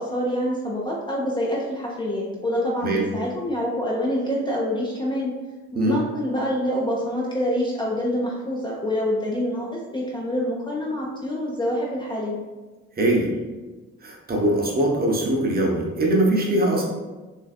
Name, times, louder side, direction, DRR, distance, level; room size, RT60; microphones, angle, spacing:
voice 1, 0.0-5.3 5.8-12.4, equal, 15° left, -4 dB, 0.4 m, -26 dB
voice 2, 13.0-13.3 14.0-16.9, right 1 dB, 25° right, -1 dB, 0.6 m, -21 dB
3.2 x 2.5 x 2.3 m, 1.2 s
figure-of-eight pair, 40°, 35 cm